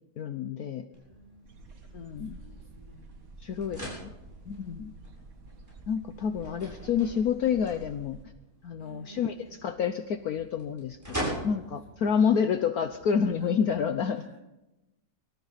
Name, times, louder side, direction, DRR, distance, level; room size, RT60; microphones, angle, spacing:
voice 1, 0.2-0.9 1.9-2.4 3.4-4.1 4.5-4.9 5.9-8.2 8.6-9.3 9.6-14.2, left 7 dB, 60° left, 9 dB, 1.2 m, -28 dB
sound 1, 0.9-13.9, right 1 dB, 10° right, 7.7 m, -43 dB
voice 2, 0.9-1.5 2.0-3.1 8.8-9.7 11.4-12.7 13.4-13.5 14.1-14.4, right 2 dB, 25° right, -2 dB, 8.3 m, -53 dB
sound 2, 1.4-8.2, right 2 dB, 50° right, 2.0 m, -49 dB
24.0 x 14.0 x 4.1 m, 0.96 s
omnidirectional pair, 2.0 m